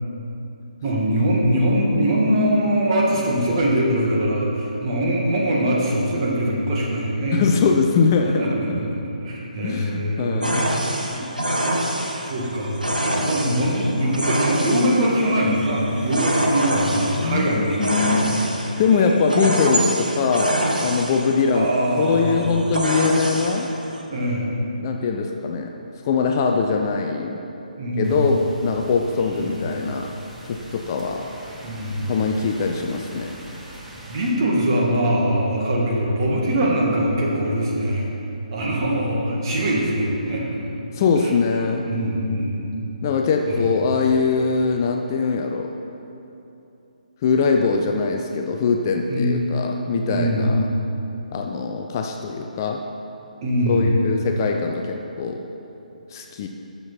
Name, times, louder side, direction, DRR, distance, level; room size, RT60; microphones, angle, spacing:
voice 1, 0.8-7.4 8.4-10.6 11.1-11.6 12.2-12.8 13.2-18.5 21.5-22.6 24.1-24.5 27.8-28.2 29.4-29.5 31.6-32.1 34.1-38.1 38.5-40.7 41.2-41.3 41.8-42.8 43.5-43.6 49.1-49.3 50.1-50.6 53.4-53.8, right 1 dB, 35° right, -3 dB, 1.7 m, -22 dB
voice 2, 7.3-8.8 9.6-10.7 13.5-13.6 17.1-18.4 18.8-21.7 22.0-23.7 24.8-25.7 26.0-27.4 28.0-30.1 30.5-31.3 32.1-33.4 40.9-41.8 43.0-45.8 47.2-50.7 51.3-52.8 53.7-55.4 56.1-56.5, left 5 dB, 25° left, 3 dB, 0.4 m, -22 dB
sound 1, 10.4-24.0, right 1 dB, 80° right, 1.3 m, -26 dB
sound 2, 28.0-34.3, right 1 dB, 5° right, 0.9 m, -41 dB
11.5 x 6.8 x 4.2 m, 2.9 s
figure-of-eight pair, 140°, 4 cm